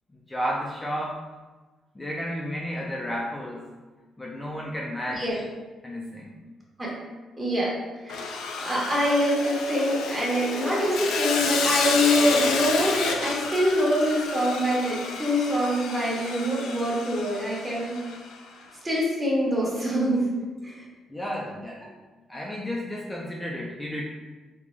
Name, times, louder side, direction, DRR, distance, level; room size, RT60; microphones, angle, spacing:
voice 1, 0.3-1.2 1.9-3.7 4.2-5.4 5.8-6.4 21.1-21.9 22.3-24.1, equal, 15° left, -4 dB, 0.5 m, -32 dB
voice 2, 7.4-7.7 8.1-8.2 8.5-18.0 18.8-20.3 20.6-20.8, equal, 25° right, -4 dB, 1.1 m, -24 dB
Sawing, 8.1-18.3, left 4 dB, 85° left, 0.4 m, -30 dB
3.7 x 2.3 x 3.1 m, 1.3 s
cardioid pair, 90°, 0 cm